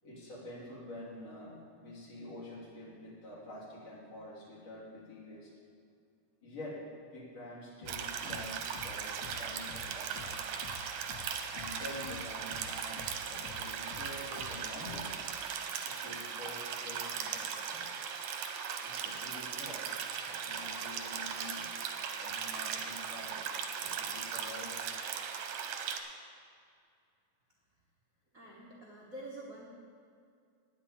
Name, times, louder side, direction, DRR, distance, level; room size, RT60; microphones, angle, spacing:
voice 1, 0.0-5.5 6.4-6.8 7.1-10.5 11.5-15.1 15.9-17.9 18.8-19.9 20.2-21.7 22.2-23.5 23.8-24.9, left 1 dB, 55° left, -7 dB, 4.1 m, -47 dB
sound 1, 7.8-15.3, left 4 dB, 80° left, 2.1 m, -50 dB
sound 2, 7.9-26.0, right 7 dB, 85° right, 2.4 m, -38 dB
voice 2, 28.3-29.7, right 1 dB, 50° right, -4 dB, 1.0 m, -47 dB
9.5 x 7.2 x 8.7 m, 2.3 s
omnidirectional pair, 3.5 m